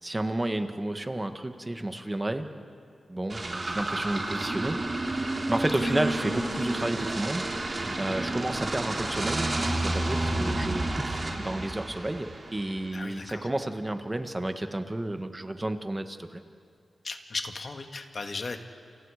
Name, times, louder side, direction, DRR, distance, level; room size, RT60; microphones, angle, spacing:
voice 1, 0.0-2.5 3.1-16.4, right 1 dB, 20° right, 7 dB, 1.7 m, -31 dB
sound 1, 3.3-12.8, right 2 dB, 45° right, 3.6 m, -30 dB
voice 2, 12.9-13.5 17.0-18.6, left 3 dB, 55° left, 5 dB, 2.0 m, -36 dB
29.5 x 29.0 x 5.1 m, 2.3 s
cardioid pair, 60°, 0 cm